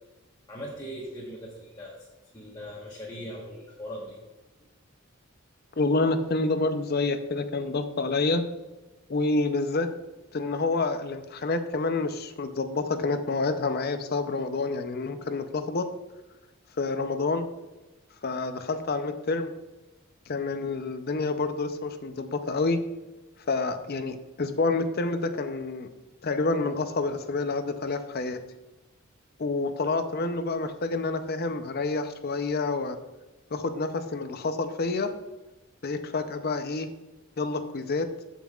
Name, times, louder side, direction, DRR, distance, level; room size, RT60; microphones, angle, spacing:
voice 1, 0.5-2.0 2.3-4.2, equal, 20° left, -4 dB, 1.2 m, -39 dB
voice 2, 5.8-8.5 9.1-10.0 10.3-15.9 16.8-17.5 18.2-19.5 20.3-22.8 23.5-25.9 26.2-28.4 29.4-33.0 33.5-35.1 35.8-36.9 37.4-38.1, left 3 dB, 45° left, 9 dB, 0.6 m, -28 dB
14.0 x 5.7 x 2.4 m, 1.1 s
head